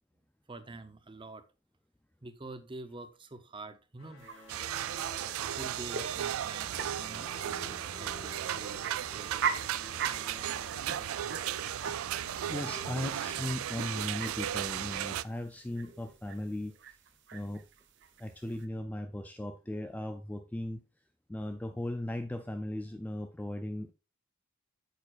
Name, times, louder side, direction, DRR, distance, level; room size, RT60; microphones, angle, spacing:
voice 1, 0.5-1.4 2.2-4.3 5.5-8.8 9.1-9.5 18.4-18.5 21.4-21.6, right 2 dB, 25° right, 0.7 m, -47 dB
sound 1, 4.0-13.5, left 2 dB, 80° left, 2.5 m, -51 dB
sound 2, 4.2-18.7, right 6 dB, 55° right, 0.8 m, -41 dB
sound 3, 4.5-15.2, right 11 dB, 80° right, 0.3 m, -35 dB
voice 2, 6.9-7.3 10.6-10.7 11.9-12.0 12.5-16.8 17.3-17.7 18.2-20.8 21.3-23.9, left 1 dB, 5° left, 0.3 m, -38 dB
8.7 x 6.7 x 2.5 m
head